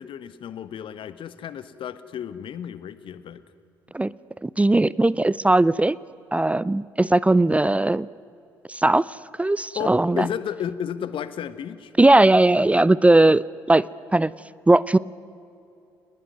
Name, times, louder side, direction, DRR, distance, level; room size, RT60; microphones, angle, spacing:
voice 1, 0.0-3.4 9.7-11.9, left 9 dB, 50° left, 14 dB, 1.3 m, -32 dB
voice 2, 4.4-6.0 6.3-8.1 8.7-9.0 9.4-10.2 12.0-13.8 14.1-14.3 14.7-15.0, right 2 dB, 10° right, 21 dB, 0.5 m, -18 dB
28.0 x 20.5 x 9.6 m, 2.7 s
figure-of-eight pair, 45°, 11 cm